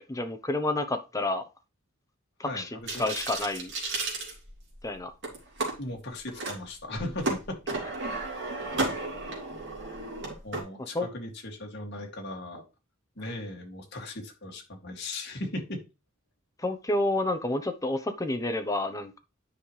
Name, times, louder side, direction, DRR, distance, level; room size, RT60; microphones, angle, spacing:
voice 1, 0.0-1.4 2.4-2.7 3.0-3.7 4.8-5.1 10.9-11.1 16.6-19.2, left 2 dB, 15° left, 0.9 m, -29 dB
voice 2, 2.4-3.0 5.8-7.6 10.4-12.6 13.2-15.8, left 1 dB, 55° left, 2.5 m, -37 dB
sound 1, 2.9-4.8 5.2-5.7 6.3-6.6 6.9-10.6, right 2 dB, 60° right, 3.1 m, -33 dB
9.9 x 5.7 x 3.3 m
head